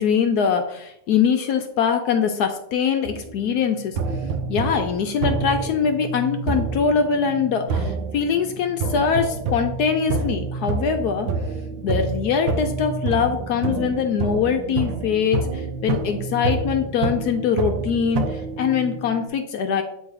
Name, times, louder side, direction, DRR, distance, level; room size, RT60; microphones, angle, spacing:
voice 1, 0.0-4.0 4.5-11.3 11.8-19.8, left 6 dB, 70° left, 6 dB, 1.0 m, -22 dB
sound 1, 3.0-3.5 4.0-19.3, right 4 dB, 80° right, 1.4 m, -28 dB
8.2 x 3.1 x 4.7 m, 0.77 s
omnidirectional pair, 2.1 m